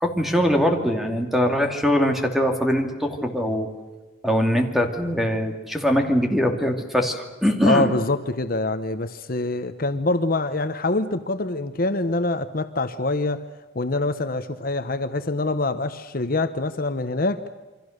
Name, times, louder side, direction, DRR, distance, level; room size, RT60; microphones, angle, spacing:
voice 1, 0.0-3.7 4.2-7.9, equal, ahead, 4 dB, 2.6 m, -22 dB
voice 2, 7.6-13.4 13.7-17.4, left 2 dB, 50° left, 9 dB, 1.0 m, -25 dB
28.5 x 24.5 x 6.6 m, 1.2 s
head